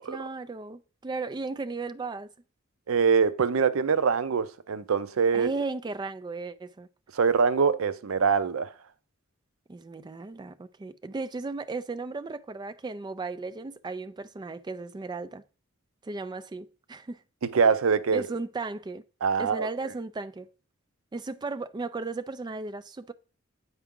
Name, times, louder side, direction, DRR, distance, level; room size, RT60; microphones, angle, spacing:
voice 1, 0.0-2.3 5.3-6.9 9.7-15.4 16.0-17.2 18.1-19.0 19.4-20.5 21.1-23.1, right 3 dB, 20° right, 0.4 m, -35 dB
voice 2, 2.9-5.5 7.1-8.7 17.5-18.2 19.2-19.7, right 5 dB, 85° right, 0.5 m, -24 dB
8.0 x 4.7 x 3.7 m
head